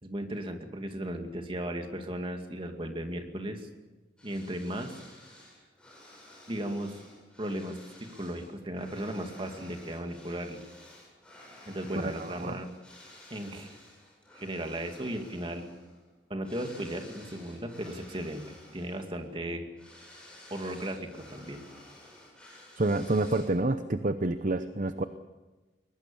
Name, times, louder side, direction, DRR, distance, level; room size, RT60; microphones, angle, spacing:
voice 1, 0.0-3.7 4.2-4.9 6.5-7.0 7.4-10.6 11.7-12.7 13.3-13.8 14.4-15.6 16.3-19.7 20.5-21.6, right 1 dB, 30° right, 5 dB, 2.4 m, -36 dB
sound 1, 4.2-23.7, left 1 dB, 5° left, 7.9 m, -53 dB
voice 2, 12.2-12.6 22.8-25.0, right 2 dB, 45° right, 10 dB, 0.8 m, -28 dB
22.0 x 21.0 x 7.1 m, 1.2 s
head